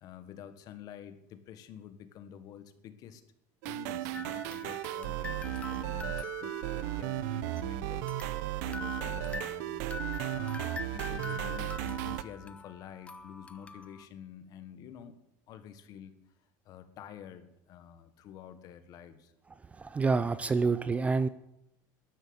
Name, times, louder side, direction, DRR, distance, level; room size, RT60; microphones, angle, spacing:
voice 1, 0.0-3.2 3.6-8.1 8.6-9.9 10.3-15.2 15.5-16.1 16.6-19.3, left 9 dB, 45° left, 11 dB, 1.5 m, -48 dB
sound 1, 3.6-12.2, right 14 dB, 85° right, 0.9 m, -35 dB
sound 2, 4.1-7.6 8.1-14.0, left 5 dB, 15° left, 0.8 m, -44 dB
voice 2, 19.8-21.3, right 4 dB, 15° right, 14 dB, 0.5 m, -27 dB
13.0 x 11.0 x 8.0 m, 0.80 s
cardioid pair, 165°, 9 cm